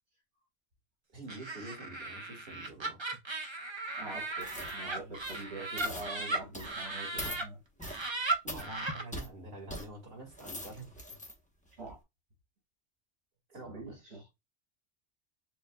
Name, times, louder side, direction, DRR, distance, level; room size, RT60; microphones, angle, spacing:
voice 1, 1.1-3.0 8.4-11.0 13.5-14.0, right 2 dB, 55° right, 1.9 m, -47 dB
Laughter, 1.3-7.4 7.8-9.0, right 2 dB, 30° right, 0.7 m, -37 dB
voice 2, 3.9-7.6 11.7-12.0 13.6-14.3, right 2 dB, 80° right, 2.8 m, -44 dB
sound 1, 4.4-4.8 5.1-5.4 5.8-6.1 6.5-6.8 7.2-7.4 7.8-8.1 8.5-8.7 9.1-9.3 9.7-9.9 10.3-11.3 11.8-11.9, equal, 5° left, 0.8 m, -42 dB
6.9 x 2.4 x 2.2 m
omnidirectional pair, 1.2 m